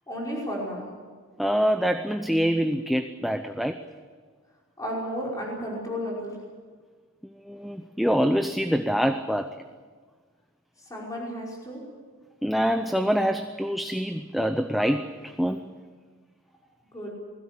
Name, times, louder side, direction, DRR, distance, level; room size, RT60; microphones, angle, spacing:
voice 1, 0.1-0.8 4.8-6.3 10.9-11.8 16.9-17.1, equal, 15° left, -4 dB, 5.5 m, -32 dB
voice 2, 1.4-3.8 7.5-9.5 12.4-15.6, equal, ahead, 7 dB, 0.6 m, -25 dB
20.5 x 16.0 x 9.9 m, 1.5 s
head